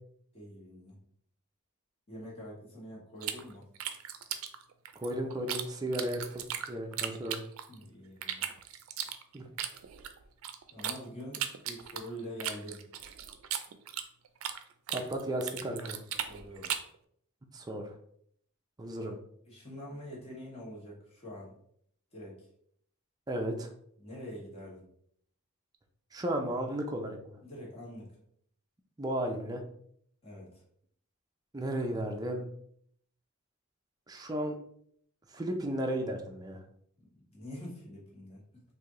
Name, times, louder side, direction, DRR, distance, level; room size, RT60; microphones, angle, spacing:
voice 1, 0.3-1.0 2.1-3.7 7.7-8.4 10.7-12.8 16.2-16.7 19.0-19.1 19.4-21.6 22.1-22.5 24.0-24.9 27.4-28.2 30.2-30.6 37.1-38.6, equal, 30° left, -4 dB, 1.4 m, -45 dB
sound 1, 3.2-5.6 5.9-7.8 8.2-11.0 11.3-14.6 14.9-16.9, right 10 dB, 85° right, 0.4 m, -37 dB
voice 2, 5.0-7.4 9.3-9.5 14.9-16.0 17.5-17.9 18.8-19.1 23.3-23.7 26.1-27.4 29.0-29.6 31.5-32.5 34.1-34.6 35.3-36.6, right 1 dB, 20° right, 2 dB, 0.5 m, -34 dB
3.3 x 2.7 x 3.7 m, 0.66 s
head